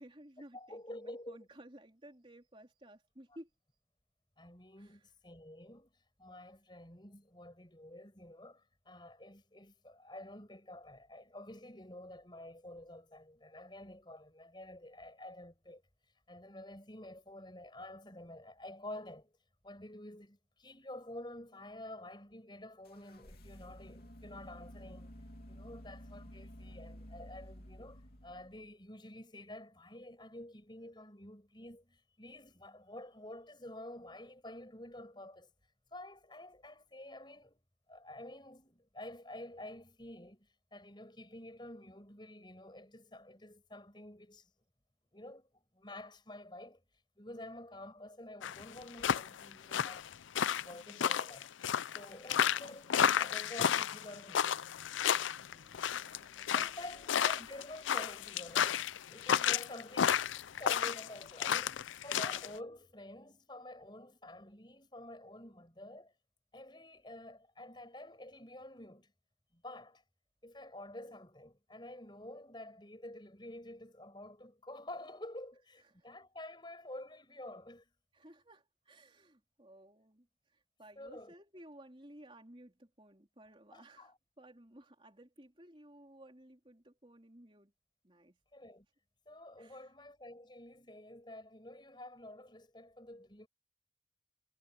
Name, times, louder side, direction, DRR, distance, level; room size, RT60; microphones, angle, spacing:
voice 1, 0.0-3.5 4.8-5.1 52.2-52.3 55.1-57.1 57.4-57.6 59.4-59.6 61.9-62.1 75.8-76.1 78.1-87.7 88.0-88.4 89.6-89.9, right 1 dB, 30° right, 3.8 m, -57 dB
voice 2, 0.5-1.4 4.4-5.9 6.2-15.8 16.3-19.4 19.6-25.1 25.5-35.5 35.9-37.6 37.9-44.5 45.1-46.8 47.2-50.1 50.5-51.5 51.9-54.6 56.5-66.1 66.5-69.1 69.5-70.0 70.4-77.9 81.0-81.3 83.7-84.2 88.5-88.9 89.3-93.5, left 1 dB, 25° left, 6.3 m, -49 dB
sound 1, 22.8-28.7, equal, 50° left, 3.1 m, -52 dB
sound 2, 48.4-62.5, left 8 dB, 85° left, 0.5 m, -32 dB
head